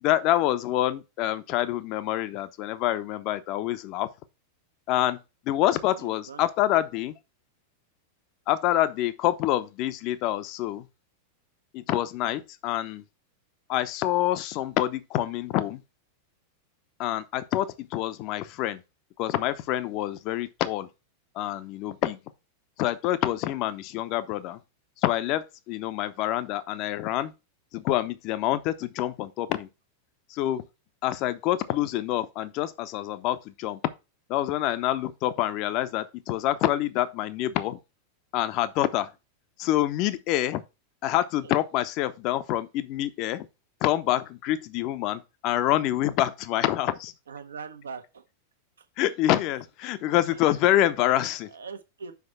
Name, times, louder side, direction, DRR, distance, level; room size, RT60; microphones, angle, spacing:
voice 1, 0.0-4.1 4.9-5.2 5.4-7.1 8.5-10.9 11.7-13.0 13.7-15.8 17.0-18.8 19.2-20.9 21.3-22.2 22.8-24.6 25.0-27.3 27.7-29.7 30.3-30.6 31.0-33.8 34.3-37.8 38.3-39.1 39.6-40.6 41.0-43.5 43.8-47.1 49.0-51.5, left 14 dB, 40° left, 0.7 m, -26 dB
voice 2, 6.0-6.4 41.4-41.5 47.3-48.2 48.8-48.9 50.3-50.7 51.5-52.1, right 5 dB, 70° right, 1.1 m, -42 dB
5.9 x 5.2 x 5.7 m
figure-of-eight pair, 90°, 0 cm